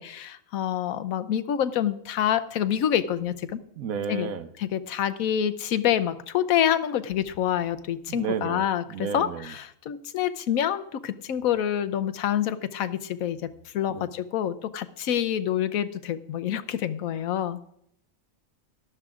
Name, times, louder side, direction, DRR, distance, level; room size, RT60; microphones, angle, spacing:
voice 1, 0.0-3.6 4.1-4.3 4.6-17.6, left 10 dB, 80° left, 11 dB, 1.1 m, -27 dB
voice 2, 3.8-4.5 8.1-8.6 8.9-9.5 13.9-14.1, right 7 dB, 75° right, 10 dB, 1.2 m, -32 dB
17.5 x 12.5 x 2.4 m, 0.73 s
omnidirectional pair, 1.5 m